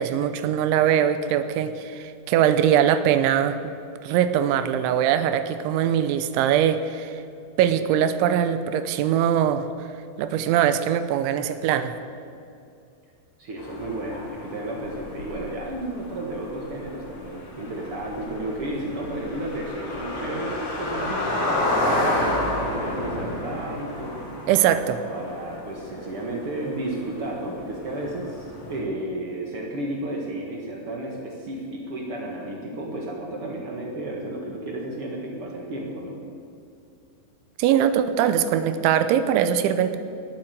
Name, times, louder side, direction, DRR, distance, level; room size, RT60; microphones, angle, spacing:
voice 1, 0.0-3.7 4.0-7.2 7.6-9.7 10.2-12.0 24.5-25.0 37.6-40.0, right 9 dB, 85° right, 11 dB, 3.1 m, -22 dB
voice 2, 13.4-24.2 25.1-36.2, right 1 dB, 65° right, -1 dB, 1.4 m, -32 dB
sound 1, 13.6-28.8, left 1 dB, 90° left, 5.4 m, -31 dB
19.0 x 9.0 x 7.9 m, 2.4 s
omnidirectional pair, 5.3 m